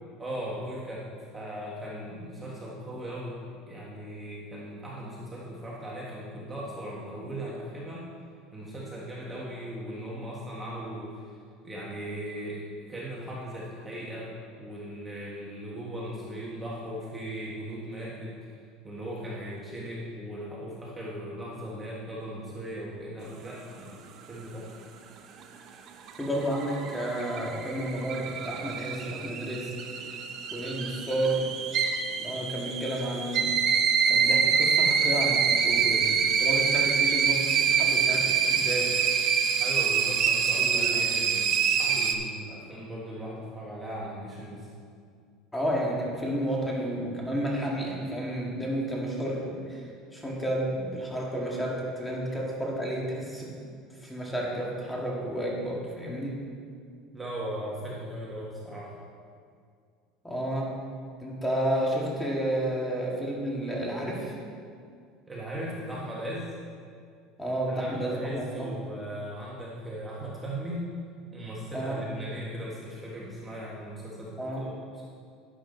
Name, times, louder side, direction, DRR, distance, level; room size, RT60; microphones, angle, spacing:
voice 1, 0.2-1.1 1.3-3.4 3.7-8.1 8.5-11.2 11.6-14.3 14.6-18.5 18.8-24.7 39.6-44.7 57.1-58.9 65.3-66.5 67.7-70.9 71.3-75.0, right 1 dB, 15° right, -5 dB, 1.6 m, -38 dB
sound 1, 25.9-42.1, right 6 dB, 45° right, 0.9 m, -26 dB
voice 2, 26.2-29.7 30.5-31.5 32.2-33.7 34.0-39.0 40.6-41.1 45.5-49.8 50.1-53.6 54.0-56.4 60.2-60.7 61.2-64.3 67.4-68.7 71.7-72.0 74.4-74.7, right 1 dB, 5° left, -3 dB, 2.0 m, -31 dB
11.5 x 9.7 x 4.0 m, 2.2 s
cardioid pair, 135°, 0 cm